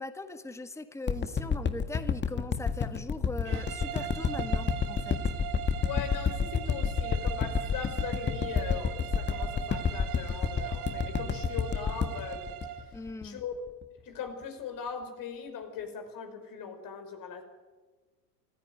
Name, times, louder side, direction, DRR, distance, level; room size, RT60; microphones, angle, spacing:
voice 1, 0.0-5.2 12.9-13.4, left 2 dB, 5° left, 10 dB, 1.5 m, -40 dB
sound 1, 1.1-13.4 13.8-13.9, left 6 dB, 20° left, 1.7 m, -29 dB
sound 2, 3.4-12.9, right 11 dB, 65° right, 3.3 m, -40 dB
voice 2, 5.8-12.5 12.8-13.6 14.0-17.4, left 7 dB, 45° left, 6 dB, 5.5 m, -40 dB
25.5 x 16.5 x 9.7 m, 1.3 s
hypercardioid pair, 80°, 48 cm